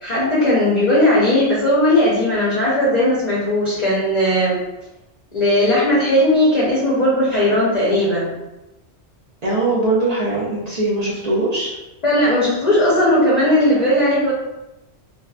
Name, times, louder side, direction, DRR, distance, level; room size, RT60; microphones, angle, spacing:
voice 1, 0.0-4.6 5.3-8.4 12.0-14.3, left 1 dB, 45° left, -7 dB, 0.6 m, -17 dB
voice 2, 9.4-11.8, right 2 dB, 50° right, -5 dB, 0.5 m, -21 dB
2.7 x 2.2 x 2.3 m, 0.99 s
omnidirectional pair, 1.2 m